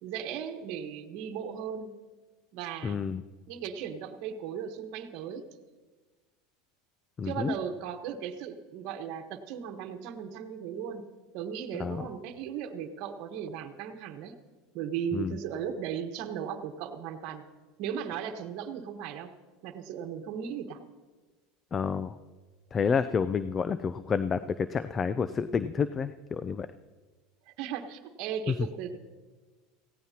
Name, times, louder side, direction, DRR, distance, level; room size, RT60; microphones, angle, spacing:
voice 1, 0.0-1.9 2.5-3.0 3.5-5.4 7.2-11.1 11.3-14.3 14.7-17.4 17.8-19.3 19.6-20.8 27.5-29.0, right 8 dB, 60° right, 4 dB, 1.2 m, -37 dB
voice 2, 2.8-3.2 7.2-7.5 11.8-12.1 15.1-15.4 21.7-22.2 22.7-26.7, left 6 dB, 25° left, 13 dB, 0.4 m, -29 dB
17.5 x 16.5 x 2.9 m, 1.3 s
supercardioid pair, 125°, 0 cm